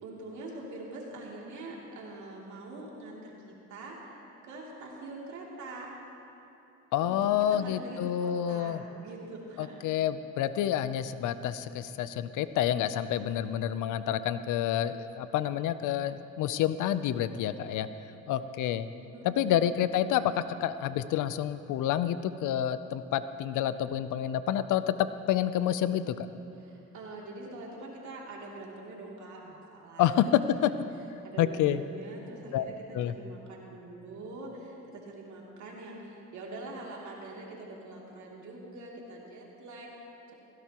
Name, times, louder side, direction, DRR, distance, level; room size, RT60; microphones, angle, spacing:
voice 1, 0.0-5.9 7.0-7.2 7.5-9.8 19.1-19.6 26.6-30.1 30.6-30.7 31.2-40.3, right 2 dB, 70° right, -3 dB, 2.8 m, -44 dB
voice 2, 6.9-8.8 9.6-17.9 18.3-18.9 19.2-26.2 30.0-30.7 31.4-31.8 32.5-32.6 32.9-33.1, left 11 dB, 85° left, 13 dB, 0.6 m, -28 dB
16.5 x 16.5 x 3.0 m, 2.9 s
cardioid pair, 90°, 30 cm